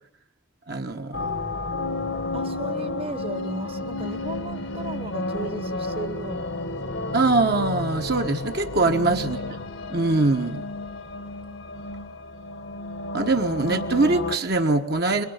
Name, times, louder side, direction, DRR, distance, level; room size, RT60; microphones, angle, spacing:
voice 1, 0.7-1.3 7.1-9.6 9.9-10.6 13.1-15.2, right 3 dB, 50° right, 4 dB, 1.4 m, -23 dB
sound 1, 1.1-14.4, left 2 dB, 75° left, 1.6 m, -31 dB
voice 2, 2.3-6.6 8.8-9.0, right 1 dB, 30° right, 12 dB, 1.2 m, -36 dB
24.0 x 23.0 x 8.1 m, 0.83 s
head